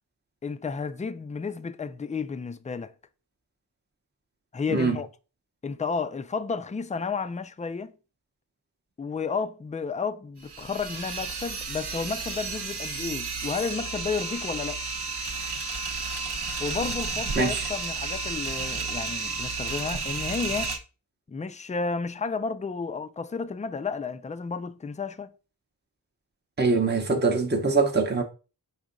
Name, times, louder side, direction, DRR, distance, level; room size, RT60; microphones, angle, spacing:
voice 1, 0.4-2.9 4.5-5.1 5.6-7.9 9.0-14.8 16.6-20.8 21.3-25.3, left 5 dB, 20° left, 0.3 m, -32 dB
sound 1, 10.4-20.8, right 4 dB, 70° right, 0.8 m, -32 dB
voice 2, 17.4-17.7 26.6-28.2, right 4 dB, 25° right, 0.7 m, -23 dB
4.9 x 2.7 x 3.8 m
wide cardioid pair, 55°, 42 cm